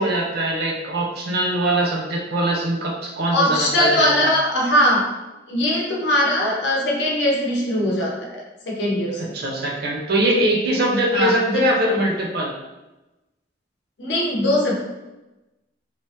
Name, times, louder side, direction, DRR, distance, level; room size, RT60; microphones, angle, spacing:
voice 1, 0.0-4.3 9.2-12.5, right 1 dB, 55° right, -2 dB, 0.6 m, -22 dB
voice 2, 3.3-5.1 5.5-9.3 11.1-11.6 14.0-14.7, left 1 dB, 60° left, -2 dB, 0.7 m, -20 dB
3.2 x 2.0 x 2.8 m, 1.0 s
head